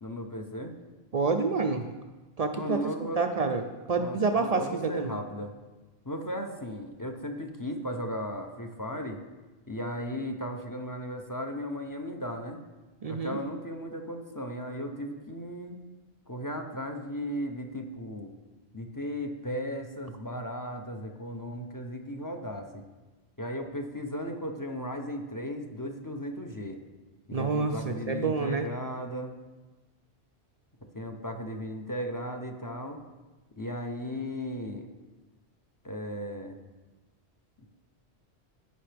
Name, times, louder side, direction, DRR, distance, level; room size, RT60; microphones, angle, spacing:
voice 1, 0.0-0.8 2.5-3.2 4.0-5.5 6.0-9.2 9.7-12.6 13.1-15.8 16.3-18.3 18.7-22.8 23.4-26.8 27.3-29.3 30.9-33.0 33.6-34.9 35.8-36.6, equal, 20° left, 4 dB, 0.6 m, -36 dB
voice 2, 1.1-1.9 2.4-2.8 3.2-5.2 13.0-13.4 27.3-28.6, right 4 dB, 55° right, 5 dB, 0.4 m, -28 dB
15.5 x 5.6 x 3.4 m, 1.2 s
omnidirectional pair, 1.1 m